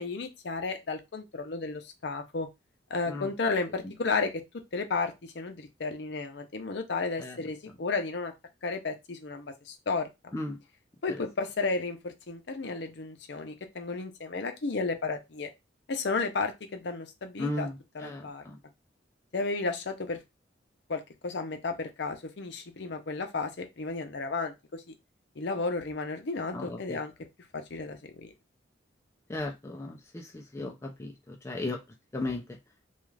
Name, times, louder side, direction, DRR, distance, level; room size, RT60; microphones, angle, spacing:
voice 1, 0.0-2.5 2.9-4.4 4.7-8.3 8.6-10.3 11.0-15.5 15.9-17.7 17.9-18.4 19.3-20.2 20.9-24.9 25.4-27.1 27.5-28.3, left 3 dB, 65° left, 5 dB, 0.6 m, -33 dB
voice 2, 17.4-17.7 18.0-18.6 26.5-27.0 29.3-31.8 32.1-32.4, left 2 dB, 15° left, 0 dB, 0.4 m, -35 dB
2.4 x 2.3 x 3.2 m, 0.22 s
head